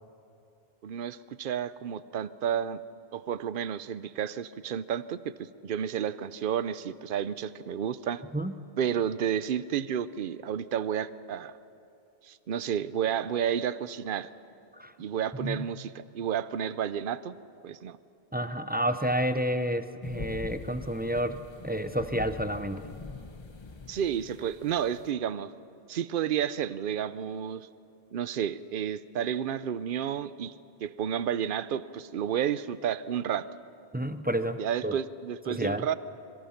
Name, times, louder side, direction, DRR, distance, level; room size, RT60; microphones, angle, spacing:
voice 1, 0.8-2.8 3.1-8.2 8.8-11.5 12.2-14.3 15.0-17.3 17.6-18.0 23.9-25.5 25.9-27.7 28.1-30.5 30.8-33.5 34.6-35.9, right 9 dB, 60° right, 15 dB, 0.8 m, -31 dB
voice 2, 18.3-21.4 21.6-22.8 33.9-34.9 35.5-35.8, equal, 10° right, 9 dB, 0.7 m, -30 dB
sound 1, 20.0-25.1, left 3 dB, 25° left, 1.0 m, -43 dB
26.0 x 23.5 x 5.8 m, 2.8 s
omnidirectional pair, 1.1 m